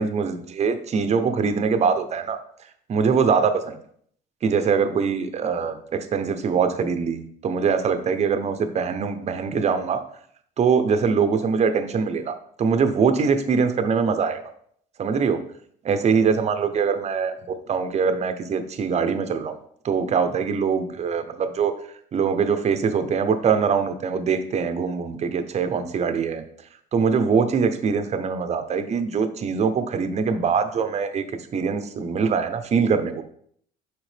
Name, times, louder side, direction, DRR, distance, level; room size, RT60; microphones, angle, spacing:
voice 1, 0.0-2.4 2.9-3.7 4.4-10.0 10.6-14.4 15.0-15.4 15.8-19.6 19.8-21.7 22.1-26.4 26.9-31.2 31.5-33.2, right 5 dB, 40° right, 9 dB, 0.7 m, -23 dB
6.3 x 4.8 x 3.4 m, 0.63 s
cardioid pair, 110°, 17 cm